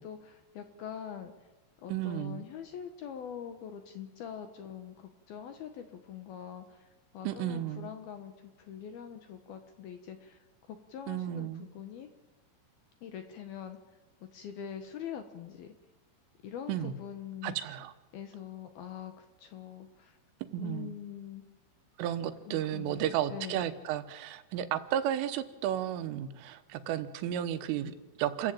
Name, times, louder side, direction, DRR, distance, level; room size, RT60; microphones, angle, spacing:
voice 1, 0.0-1.3 1.8-6.9 7.1-12.1 13.0-13.8 14.3-15.7 16.4-17.6 18.1-20.2 20.6-21.4 22.5-23.7, left 9 dB, 70° left, 8 dB, 2.5 m, -44 dB
voice 2, 1.9-2.4 7.2-7.9 11.1-11.7 16.7-16.9 17.4-17.9 20.5-21.0 22.0-28.5, right 11 dB, 85° right, 11 dB, 3.7 m, -33 dB
29.0 x 14.5 x 8.9 m, 1.1 s
omnidirectional pair, 5.7 m